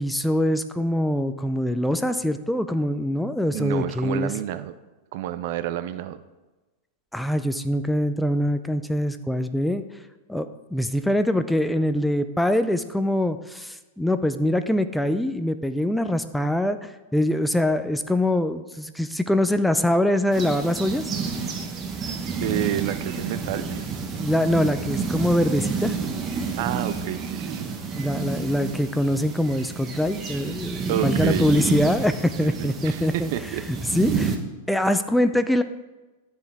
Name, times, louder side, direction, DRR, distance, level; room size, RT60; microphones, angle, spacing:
voice 1, 0.0-4.3 7.1-9.8 10.3-21.1 24.2-26.0 28.0-33.3 33.7-34.3 34.7-35.6, left 1 dB, 5° left, 10 dB, 0.4 m, -23 dB
voice 2, 3.5-4.7 5.1-6.2 22.4-23.8 26.6-27.7 30.9-31.7 32.3-33.7, right 12 dB, 60° right, 13 dB, 0.5 m, -29 dB
sound 1, 20.3-34.4, right 5 dB, 25° right, 1.1 m, -29 dB
12.5 x 4.6 x 3.5 m, 1.2 s
hypercardioid pair, 115°, 0 cm